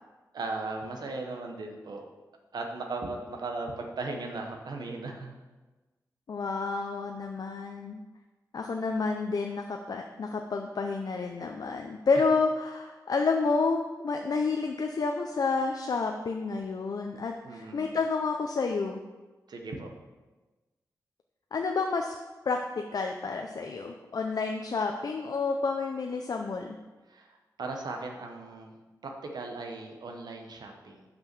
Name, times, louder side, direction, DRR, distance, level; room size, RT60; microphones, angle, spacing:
voice 1, 0.3-2.1 2.5-5.3 12.1-12.2 17.4-18.0 19.5-19.9 27.1-28.7 29.0-31.0, right 3 dB, 75° right, 2 dB, 0.9 m, -37 dB
voice 2, 6.3-8.0 8.5-19.0 21.5-22.1 22.5-22.6 22.9-26.8, left 4 dB, 65° left, 3 dB, 0.5 m, -30 dB
5.6 x 5.3 x 6.0 m, 1.2 s
cardioid pair, 55°, 7 cm